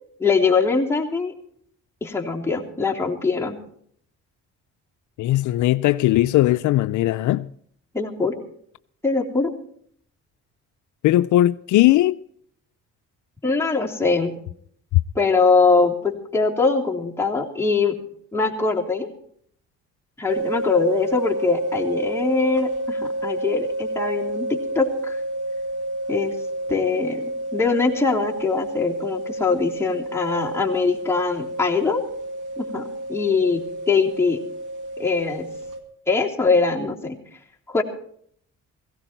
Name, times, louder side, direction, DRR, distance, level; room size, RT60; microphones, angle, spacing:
voice 1, 0.2-1.3 2.0-3.6 7.9-8.4 9.0-9.5 13.4-14.4 15.1-18.0 18.3-19.1 20.2-25.2 26.1-26.3 26.7-27.2 27.5-32.0 32.6-34.4 35.0-35.5 36.1-37.2 37.7-37.8, left 4 dB, 10° left, 3.1 m, -22 dB
voice 2, 5.2-7.5 11.0-12.2 14.9-15.0, left 15 dB, 75° left, 0.5 m, -18 dB
sound 1, 20.3-35.8, right 1 dB, 85° right, 2.1 m, -30 dB
17.5 x 16.0 x 4.5 m
cardioid pair, 90°, 30 cm